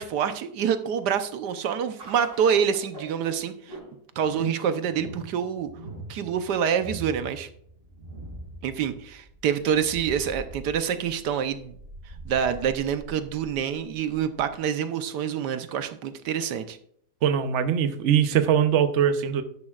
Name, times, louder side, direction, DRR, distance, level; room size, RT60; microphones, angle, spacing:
voice 1, 0.0-3.8 4.2-5.7 6.1-7.5 8.6-11.8 12.3-16.8, right 8 dB, 90° right, 10 dB, 1.4 m, -26 dB
sound 1, 2.0-14.6, right 2 dB, 30° right, 5.1 m, -43 dB
voice 2, 17.2-19.4, right 8 dB, 55° right, 9 dB, 1.0 m, -22 dB
12.0 x 10.5 x 2.4 m, 0.65 s
omnidirectional pair, 1.8 m